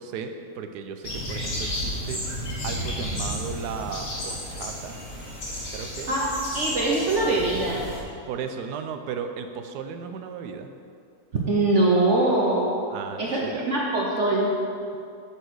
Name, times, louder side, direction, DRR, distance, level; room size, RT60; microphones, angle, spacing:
voice 1, 0.0-2.2 2.6-5.0 5.7-6.2 8.3-10.7 12.9-13.6, right 6 dB, 75° right, 7 dB, 1.1 m, -35 dB
sound 1, 1.0-8.0, left 1 dB, 75° left, 2.3 m, -32 dB
voice 2, 6.5-7.9 11.5-12.7 13.2-14.5, right 2 dB, 50° right, -4 dB, 1.0 m, -22 dB
7.9 x 4.2 x 6.2 m, 2.4 s
omnidirectional pair, 1.9 m